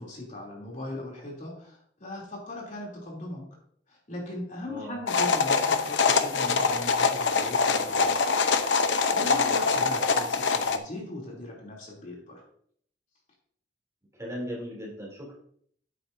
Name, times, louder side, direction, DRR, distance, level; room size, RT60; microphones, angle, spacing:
voice 1, 0.0-3.4 3.9-8.3 8.8-12.4, left 1 dB, 45° left, -2 dB, 3.0 m, -39 dB
sound 1, 5.1-10.8, left 4 dB, 75° left, 0.8 m, -24 dB
voice 2, 9.3-9.8 14.1-15.3, equal, 15° right, -3 dB, 3.1 m, -38 dB
9.8 x 9.0 x 2.7 m, 0.62 s
head